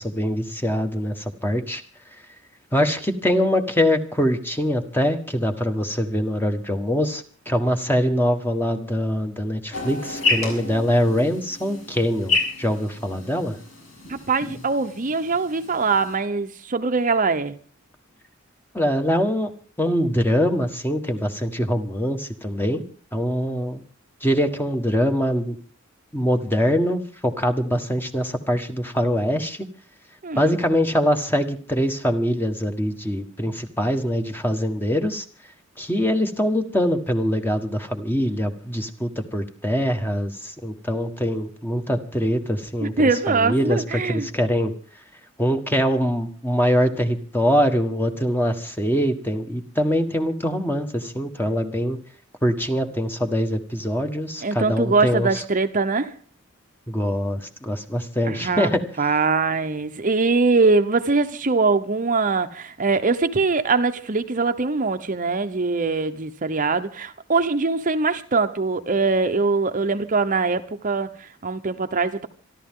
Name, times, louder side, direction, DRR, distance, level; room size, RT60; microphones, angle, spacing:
voice 1, 0.0-1.8 2.7-13.6 18.7-19.5 19.8-22.8 23.1-23.8 24.2-25.6 26.1-29.6 30.4-35.2 35.8-42.9 43.3-44.7 45.4-52.0 52.4-55.4 56.9-58.8, equal, 10° left, 1.6 m, -23 dB
sound 1, 9.7-16.2, left 3 dB, 85° left, 7.1 m, -30 dB
voice 2, 14.1-17.6 30.2-30.5 42.8-44.3 54.4-56.1 58.2-58.7 59.0-72.3, right 4 dB, 40° right, 0.9 m, -22 dB
26.5 x 12.0 x 3.8 m
head